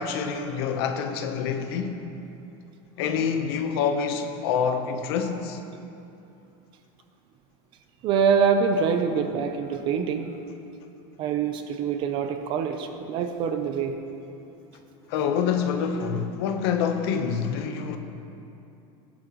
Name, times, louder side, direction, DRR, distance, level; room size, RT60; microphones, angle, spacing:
voice 1, 0.0-2.0 3.0-5.6 9.1-9.4 15.1-18.0, left 6 dB, 55° left, 1.0 m, -27 dB
voice 2, 8.0-10.3 11.2-14.0, right 6 dB, 35° right, 0.6 m, -25 dB
17.0 x 11.5 x 3.1 m
supercardioid pair, 170°, 15 cm